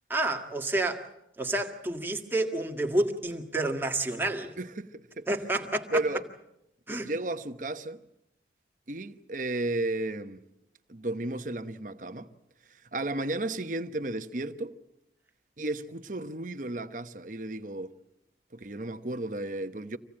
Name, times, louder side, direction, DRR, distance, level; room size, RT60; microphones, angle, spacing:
voice 1, 0.1-1.0 1.4-4.5 5.3-6.0 6.9-7.1, right 2 dB, 10° right, 1.8 m, -29 dB
voice 2, 4.6-4.9 5.2-5.3 5.5-5.6 5.9-6.2 6.9-8.0 8.9-10.4 10.9-12.3 12.9-14.7 15.6-17.9 18.5-20.0, right 2 dB, 45° right, 1.0 m, -33 dB
26.5 x 17.0 x 8.7 m
head